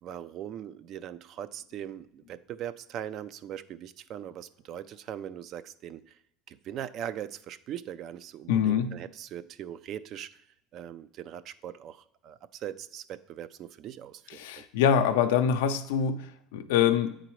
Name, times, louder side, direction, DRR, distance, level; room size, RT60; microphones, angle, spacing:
voice 1, 0.0-6.2 6.5-10.4 10.7-14.6, right 10 dB, 55° right, 14 dB, 0.3 m, -40 dB
voice 2, 8.5-8.9 14.4-17.1, left 8 dB, 85° left, 8 dB, 0.5 m, -25 dB
8.9 x 3.9 x 3.0 m, 0.76 s
supercardioid pair, 100°, 0 cm